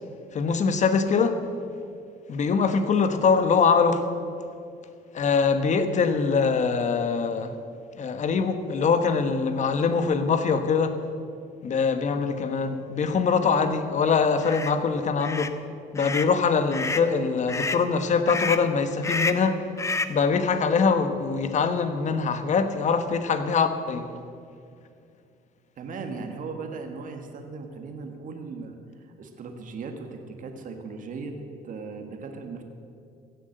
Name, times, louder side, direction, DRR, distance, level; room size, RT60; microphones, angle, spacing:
voice 1, 0.3-1.4 2.3-4.1 5.1-7.6 8.0-11.0 11.6-15.6 15.9-19.7 20.1-24.1, left 5 dB, 45° left, 1.2 m, -23 dB
sound 1, 14.4-14.7 15.2-15.5 16.0-16.3 16.7-17.1 17.5-17.8 18.3-18.7 19.0-19.5 19.8-20.2, left 3 dB, 15° left, 0.6 m, -29 dB
voice 2, 25.8-31.4 31.6-32.6, right 4 dB, 50° right, 1.7 m, -37 dB
16.0 x 7.8 x 7.9 m
cardioid pair, 110°, 17 cm